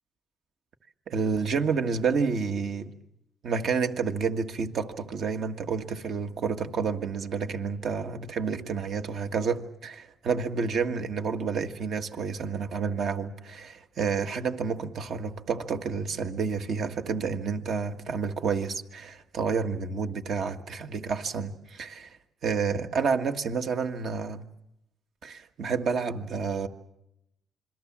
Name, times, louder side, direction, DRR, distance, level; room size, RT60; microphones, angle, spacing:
voice 1, 1.1-2.9 3.4-22.2 22.4-24.4 25.2-26.7, right 5 dB, 65° right, 1.7 m, -29 dB
27.5 x 22.5 x 7.5 m
cardioid pair, 90°, 0 cm